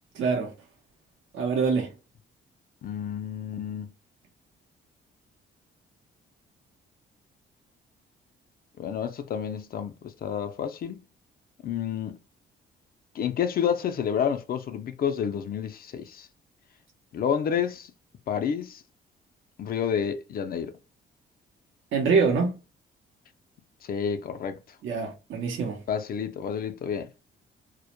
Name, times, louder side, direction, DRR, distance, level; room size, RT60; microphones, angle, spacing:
voice 1, 0.1-0.5 1.3-1.9 21.9-22.5 24.8-25.8, right 5 dB, 75° right, 0.7 m, -25 dB
voice 2, 2.8-3.9 8.8-11.1 11.6-12.2 13.1-16.3 17.1-17.9 18.3-18.8 19.6-20.7 23.8-24.6 25.9-27.1, left 8 dB, 50° left, 0.4 m, -29 dB
2.1 x 2.0 x 2.8 m
cardioid pair, 90°, 20 cm